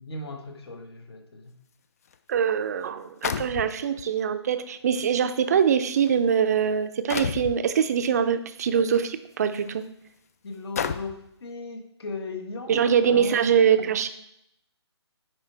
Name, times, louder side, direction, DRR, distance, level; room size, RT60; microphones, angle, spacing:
voice 1, 0.0-1.5 10.4-13.5, left 3 dB, 65° left, 4 dB, 1.5 m, -37 dB
sound 1, 2.1-2.2 3.2-4.0 5.0-5.1 5.8-6.1 7.1-7.6 8.9-9.0 9.6-9.7 10.8-11.3, left 7 dB, 35° left, 0.3 m, -30 dB
voice 2, 2.3-9.8 12.7-14.1, right 7 dB, 35° right, 10 dB, 0.5 m, -23 dB
9.6 x 4.5 x 3.3 m, 0.77 s
hypercardioid pair, 155°, 15 cm